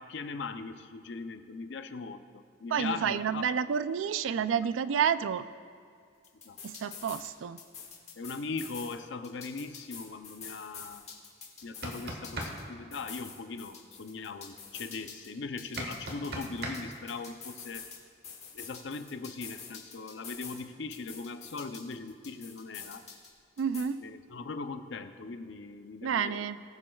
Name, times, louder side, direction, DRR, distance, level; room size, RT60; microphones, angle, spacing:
voice 1, 0.0-3.5 6.4-6.6 8.2-11.1 11.6-17.9 18.5-23.0 24.0-26.5, left 4 dB, 65° left, 9 dB, 0.5 m, -40 dB
voice 2, 2.7-5.5 6.6-7.6 23.6-24.0 26.0-26.6, right 7 dB, 80° right, 14 dB, 0.3 m, -30 dB
sound 1, 6.2-7.3 7.6-8.9 9.2-12.6 12.9-15.3 15.6-18.0 18.2-20.6 20.9-23.3 23.6-23.8, left 6 dB, 35° left, 1.5 m, -46 dB
sound 2, 11.6-12.5 15.8-16.8, right 1 dB, 55° right, 1.3 m, -36 dB
19.5 x 7.6 x 2.3 m, 2.2 s
head